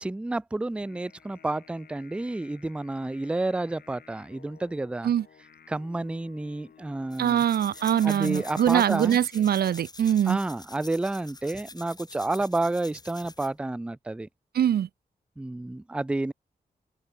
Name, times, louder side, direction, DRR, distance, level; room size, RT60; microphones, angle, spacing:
voice 1, 0.0-5.1 5.7-7.4 8.0-9.2 10.3-14.3 15.4-16.3, right 2 dB, 5° right, 0.4 m, -30 dB
sound 1, 0.7-9.2, left 7 dB, 90° left, 2.5 m, -52 dB
sound 2, 7.1-13.6, left 2 dB, 25° left, 3.8 m, -46 dB
voice 2, 7.2-10.4 14.5-14.9, right 10 dB, 85° right, 0.5 m, -23 dB
open air
wide cardioid pair, 100°, 16 cm